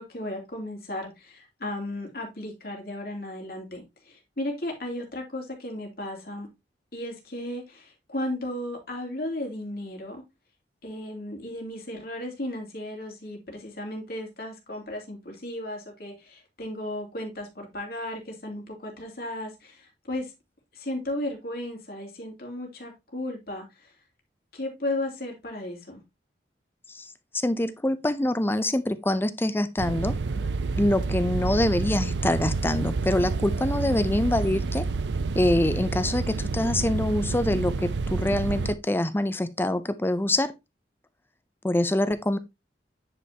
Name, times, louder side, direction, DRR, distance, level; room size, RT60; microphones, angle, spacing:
voice 1, 0.0-6.5 6.9-10.2 10.8-20.3 20.7-23.9 24.5-26.0, left 1 dB, 55° left, 2.7 m, -35 dB
voice 2, 27.3-30.1 30.8-34.8 35.3-40.5 41.6-42.4, left 1 dB, 10° left, 0.4 m, -25 dB
sound 1, 29.8-38.8, right 3 dB, 80° right, 0.5 m, -29 dB
9.7 x 5.4 x 2.8 m
head